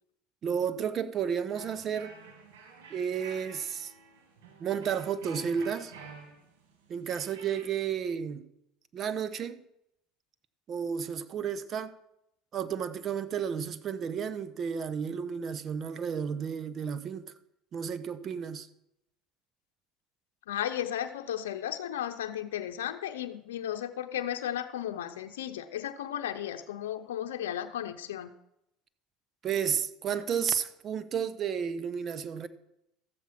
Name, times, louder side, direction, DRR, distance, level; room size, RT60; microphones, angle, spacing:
voice 1, 0.4-2.1 2.9-3.9 4.6-5.9 6.9-8.4 8.9-9.6 10.7-11.9 12.5-17.3 17.7-18.7 29.4-32.5, right 7 dB, 45° right, 1.0 m, -32 dB
sound 1, 1.5-7.7, right 4 dB, 85° right, 2.5 m, -49 dB
voice 2, 20.5-28.3, left 11 dB, 90° left, 0.6 m, -34 dB
13.5 x 7.5 x 5.8 m
supercardioid pair, 85°, 0 cm